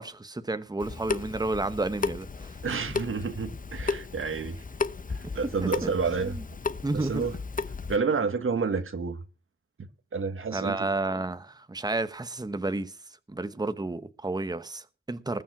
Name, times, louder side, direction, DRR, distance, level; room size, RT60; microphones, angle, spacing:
voice 1, 0.0-2.3 5.6-5.9 6.2-6.4 6.8-7.2 10.5-12.9 13.3-15.4, right 2 dB, 20° right, 1.0 m, -31 dB
Water tap faucet / Sink (filling or washing) / Drip, 0.8-8.0, left 4 dB, 40° left, 0.9 m, -34 dB
voice 2, 2.6-4.6 5.3-6.3 6.9-7.3 7.9-9.2 10.1-10.9, right 5 dB, 85° right, 1.6 m, -29 dB
20.5 x 7.3 x 5.9 m
wide cardioid pair, 115°, 21 cm